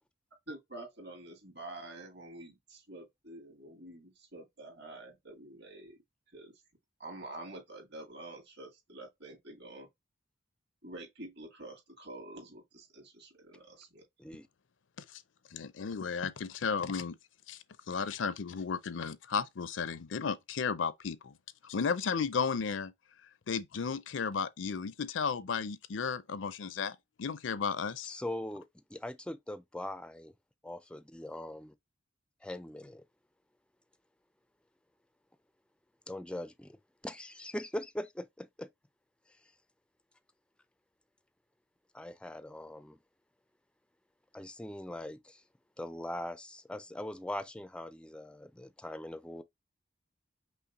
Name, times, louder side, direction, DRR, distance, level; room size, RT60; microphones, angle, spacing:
voice 1, 0.5-6.0 6.3-6.5 7.0-9.9 10.8-14.0, right 2 dB, 60° right, 2.2 m, -48 dB
voice 2, 15.5-17.2 17.5-17.6 17.9-21.3 21.6-22.9 23.5-28.2, left 6 dB, 70° left, 0.5 m, -34 dB
voice 3, 28.0-30.3 30.6-31.7 32.4-33.0 36.1-36.8 37.0-38.7 39.3-39.5 41.9-43.0 44.3-45.4 45.8-49.4, left 1 dB, 5° left, 0.3 m, -41 dB
5.6 x 2.1 x 4.0 m
head